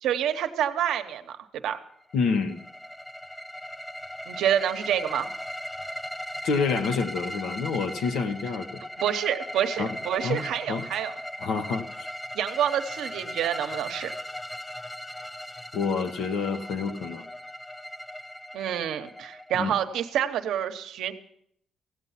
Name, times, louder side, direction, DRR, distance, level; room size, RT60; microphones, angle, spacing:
voice 1, 0.0-1.8 4.3-5.3 9.0-11.1 12.3-14.1 18.5-21.1, right 10 dB, 80° right, 7 dB, 0.9 m, -28 dB
voice 2, 2.1-2.6 6.4-8.8 9.8-10.8 11.4-12.1 15.7-17.2 19.5-19.7, left 5 dB, 80° left, 7 dB, 1.1 m, -28 dB
sound 1, 2.1-19.9, equal, 5° left, 0.5 m, -38 dB
16.0 x 8.2 x 5.7 m, 0.71 s
cardioid pair, 90°, 0 cm